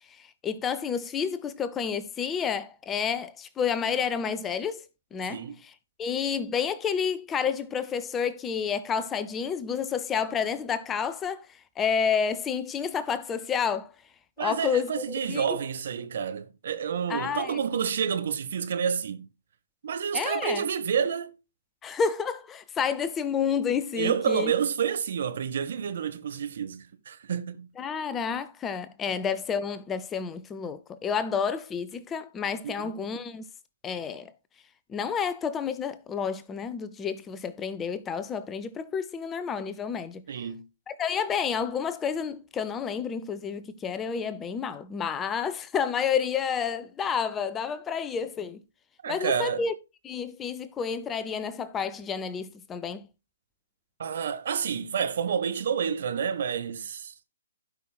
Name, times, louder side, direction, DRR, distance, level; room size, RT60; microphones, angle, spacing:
voice 1, 0.0-4.9 5.1-5.7 6.0-13.9 14.4-15.6 17.1-17.6 20.1-20.6 21.8-24.5 27.8-33.4 33.8-34.3 34.9-40.2 40.9-48.6 49.1-49.7 50.0-53.1, left 6 dB, 15° left, 0.6 m, -30 dB
voice 2, 14.4-19.3 19.8-21.3 23.9-27.7 32.6-33.0 40.3-40.6 49.0-49.6 54.0-57.2, right 7 dB, 50° right, 1.2 m, -29 dB
16.0 x 5.4 x 2.3 m
figure-of-eight pair, 125°, 0 cm